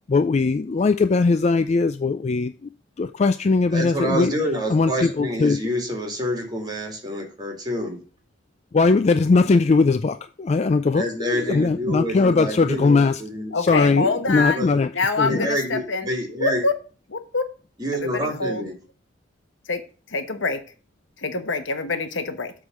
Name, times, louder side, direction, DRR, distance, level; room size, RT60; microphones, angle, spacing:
voice 1, 0.1-2.7 3.0-4.3 4.7-5.6 8.7-13.2 13.6-14.9 15.2-15.5, left 4 dB, 35° left, 0.4 m, -20 dB
voice 2, 3.7-8.0 10.9-13.8 14.3-14.7 15.3-16.7 17.8-18.8, equal, 20° right, 2.4 m, -27 dB
voice 3, 13.5-14.6 14.9-16.1 16.4-16.7 17.1-17.4 17.9-18.6 19.7-19.8 20.1-20.6 21.2-22.5, left 3 dB, 80° left, 1.1 m, -25 dB
8.0 x 3.7 x 6.6 m
head